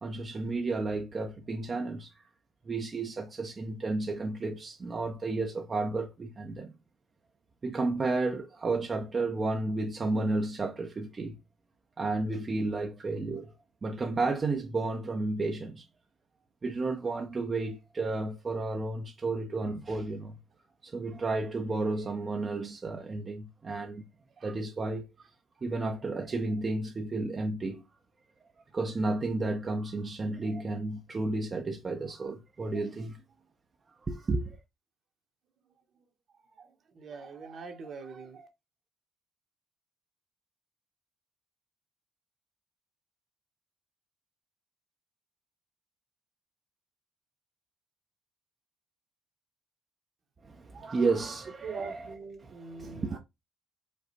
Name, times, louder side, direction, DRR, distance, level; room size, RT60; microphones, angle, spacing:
voice 1, 0.0-2.3 2.7-6.7 7.6-11.4 12.0-13.5 13.8-15.8 16.6-20.4 20.8-24.0 24.4-25.1 25.6-27.8 28.7-33.2 34.0-34.6 50.4-53.2, right 3 dB, 35° right, 0.7 m, -32 dB
voice 2, 37.0-38.5 50.7-50.9 51.6-53.2, right 5 dB, 60° right, 1.3 m, -43 dB
5.1 x 2.3 x 4.1 m
supercardioid pair, 65°, 0 cm